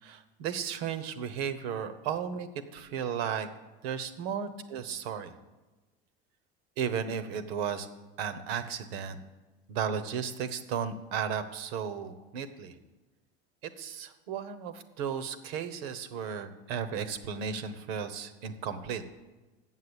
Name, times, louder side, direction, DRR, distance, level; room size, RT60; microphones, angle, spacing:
voice 1, 0.0-3.5 3.8-5.3 6.8-7.9 8.2-9.2 9.7-12.8 13.6-19.0, right 7 dB, 75° right, 11 dB, 1.0 m, -34 dB
7.5 x 7.3 x 8.1 m, 1.2 s
hypercardioid pair, 85°, 31 cm